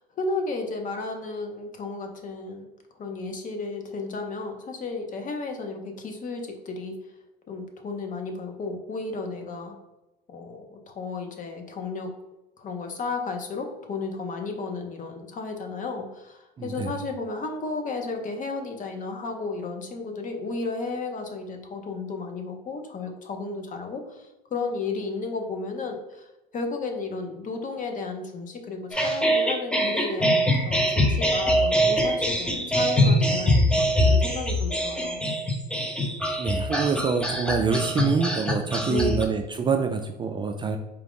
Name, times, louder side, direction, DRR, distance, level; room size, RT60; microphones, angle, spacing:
voice 1, 0.0-2.7 2.9-6.9 7.5-9.8 10.3-12.1 12.6-35.2 38.9-39.2, left 3 dB, 40° left, 4 dB, 0.8 m, -33 dB
voice 2, 16.6-16.9 36.4-40.8, right 5 dB, 25° right, 5 dB, 0.3 m, -26 dB
sound 1, 28.9-39.2, equal, 5° left, 0.7 m, -23 dB
4.4 x 2.5 x 3.7 m, 0.96 s
supercardioid pair, 90°, 21 cm